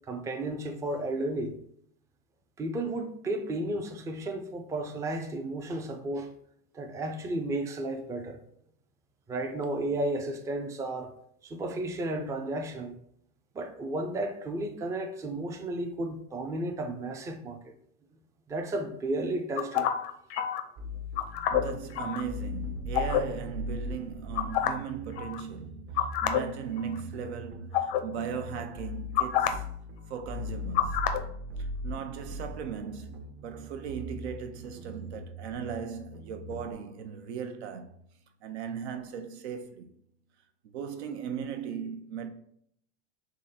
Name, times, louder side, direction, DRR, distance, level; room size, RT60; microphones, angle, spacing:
voice 1, 0.1-1.5 2.6-6.3 6.7-8.4 9.3-11.1 11.4-13.0 13.5-17.7 18.5-19.9, right 1 dB, 10° right, 0.4 m, -33 dB
sound 1, 19.6-20.6 21.2-22.2 22.9-23.2 24.4-24.9 25.2-25.4 26.0-26.4 26.8-27.0 27.7-28.0 29.2-29.5 30.7-31.2, left 11 dB, 75° left, 0.7 m, -27 dB
sound 2, 20.8-36.7, left 1 dB, 45° right, 0.7 m, -40 dB
voice 2, 21.5-29.7 30.1-31.2 31.6-38.0 38.4-39.9 40.7-42.3, right 7 dB, 90° right, 0.7 m, -38 dB
3.7 x 3.1 x 4.2 m
supercardioid pair, 125°, 32 cm